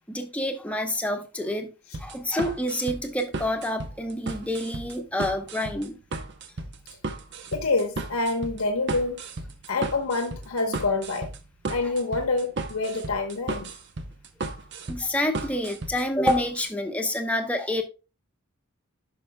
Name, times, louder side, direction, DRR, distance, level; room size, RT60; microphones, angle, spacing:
voice 1, 0.1-1.7 2.0-6.0 14.9-17.8, left 1 dB, 5° left, 0.9 m, -28 dB
sound 1, 1.9-16.7, right 3 dB, 50° right, 0.7 m, -35 dB
voice 2, 7.5-9.2 9.7-11.3 11.7-13.7, left 3 dB, 75° left, 1.0 m, -27 dB
11.5 x 5.5 x 2.2 m
head